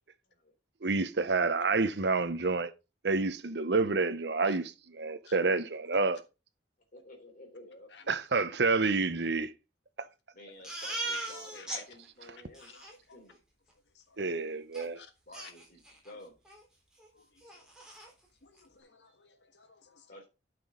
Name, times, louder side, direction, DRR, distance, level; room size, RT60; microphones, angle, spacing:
voice 1, 0.8-2.7 3.0-6.2 8.1-9.5 10.0-10.1 12.3-12.4 14.2-15.0, right 3 dB, 65° right, 0.8 m, -29 dB
voice 2, 6.9-7.9 10.3-12.8 13.1-13.4 15.3-16.3 20.1-20.3, left 1 dB, 50° left, 3.6 m, -52 dB
Crying sobbing, 10.6-11.8 12.2-12.3 12.5-12.9 14.7-14.8 15.3-16.1 16.5-16.6 17.0-17.1 17.4-18.1, right 2 dB, 5° right, 3.6 m, -39 dB
voice 3, 12.7-13.2 13.9-14.2 14.9-15.1 17.1-17.6 18.4-20.1, left 6 dB, 75° left, 1.5 m, -56 dB
12.0 x 6.1 x 3.7 m
head